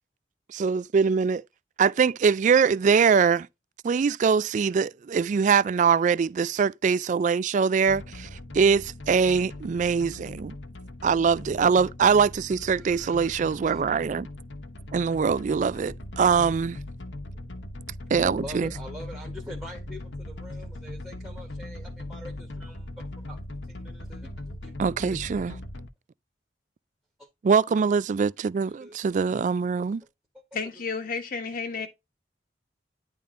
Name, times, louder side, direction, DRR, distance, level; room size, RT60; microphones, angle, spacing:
voice 1, 0.5-1.4 1.8-3.5 3.8-8.3 8.5-10.5 11.0-14.3 14.9-16.8 18.1-18.7 24.8-25.5 27.4-30.0, right 6 dB, 45° right, 0.3 m, -23 dB
sound 1, 7.9-25.9, left 1 dB, 85° left, 1.2 m, -40 dB
voice 2, 12.9-13.3 13.7-13.8 18.2-23.4 23.8-24.7 25.1-25.6 27.2-27.3 28.8-29.0 31.7-31.9, equal, 10° right, 1.3 m, -44 dB
voice 3, 30.5-31.9, left 5 dB, 50° left, 1.2 m, -32 dB
10.0 x 3.6 x 3.7 m
head